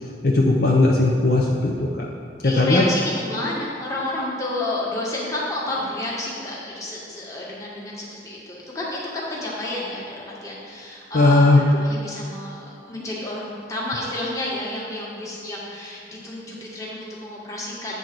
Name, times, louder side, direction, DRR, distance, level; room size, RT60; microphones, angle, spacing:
voice 1, 0.0-2.1 2.4-2.8 11.1-11.6, left 2 dB, 50° left, -2 dB, 0.6 m, -18 dB
voice 2, 2.4-18.0, left 1 dB, 15° left, -5 dB, 1.3 m, -30 dB
9.0 x 3.8 x 6.0 m, 2.4 s
head